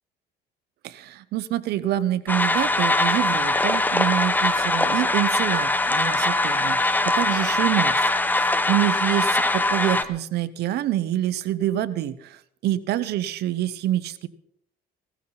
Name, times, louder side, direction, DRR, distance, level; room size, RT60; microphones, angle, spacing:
voice 1, 0.8-8.4 8.7-14.3, right 13 dB, 75° right, 15 dB, 1.0 m, -26 dB
sound 1, 2.3-10.0, left 2 dB, 10° left, 1.0 m, -22 dB
18.0 x 14.5 x 4.1 m, 0.69 s
cardioid pair, 110°, 17 cm